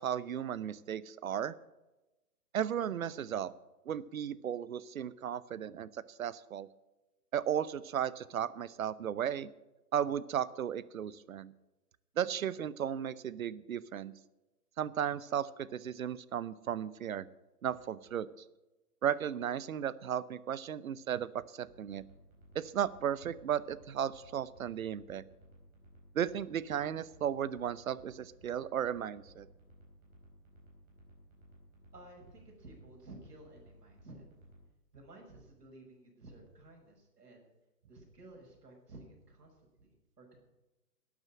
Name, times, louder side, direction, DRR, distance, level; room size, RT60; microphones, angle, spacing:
voice 1, 0.0-1.5 2.5-3.5 3.9-5.9 6.2-6.7 7.3-9.5 9.9-11.5 12.2-14.1 14.8-17.3 17.6-18.3 19.0-22.0 22.5-25.2 26.1-29.5, right 9 dB, 60° right, 18 dB, 0.8 m, -35 dB
sound 1, 21.7-34.6, equal, 20° right, 4.1 m, -59 dB
voice 2, 31.9-34.2 34.9-37.5 37.9-40.4, right 2 dB, 85° right, 1 dB, 6.3 m, -54 dB
12.5 x 8.8 x 8.8 m, 1.0 s
hypercardioid pair, 155°, 46 cm